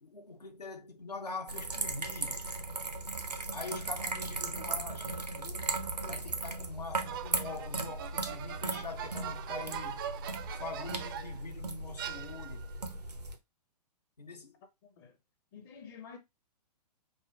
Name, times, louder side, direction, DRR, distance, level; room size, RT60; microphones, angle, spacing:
voice 1, 0.0-2.5 3.5-5.7 6.1-10.0 10.6-12.7 14.2-14.6, left 3 dB, 80° left, 0.8 m, -43 dB
sound 1, 1.5-13.4, right 3 dB, 80° right, 0.8 m, -37 dB
sound 2, 7.1-11.5 12.0-12.7, right 10 dB, 35° right, 0.5 m, -42 dB
voice 2, 14.8-15.2 15.5-16.2, left 6 dB, 35° left, 0.6 m, -49 dB
5.1 x 2.1 x 3.4 m
figure-of-eight pair, 115°, 20 cm